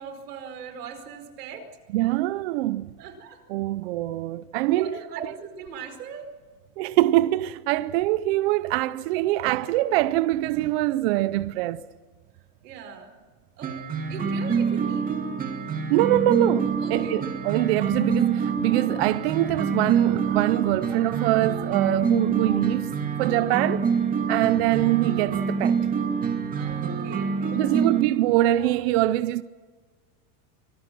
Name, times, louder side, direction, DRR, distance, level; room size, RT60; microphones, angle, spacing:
voice 1, 0.0-1.7 3.0-3.4 4.7-6.3 12.6-13.1 13.6-13.7 14.1-15.1 16.8-17.2 26.5-27.9, right 6 dB, 85° right, 4.9 m, -40 dB
voice 2, 1.9-2.9 3.5-5.3 6.8-11.8 15.9-23.9 24.3-25.8 27.5-29.4, right 15 dB, 45° right, 0.6 m, -24 dB
sound 1, 13.6-28.0, right 5 dB, 20° right, 2.1 m, -26 dB
25.5 x 20.0 x 6.0 m
supercardioid pair, 165°, 46 cm